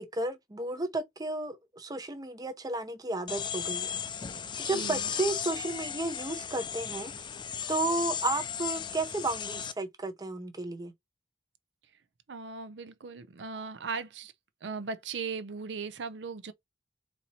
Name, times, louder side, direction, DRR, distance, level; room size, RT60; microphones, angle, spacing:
voice 1, 0.0-3.9 4.6-7.1 7.7-10.9, right 2 dB, 20° right, 0.6 m, -33 dB
sound 1, 3.3-9.7, left 8 dB, 25° left, 0.4 m, -35 dB
voice 2, 4.7-5.1 12.3-14.3 14.6-16.5, right 5 dB, 75° right, 0.6 m, -38 dB
4.2 x 2.8 x 4.2 m
head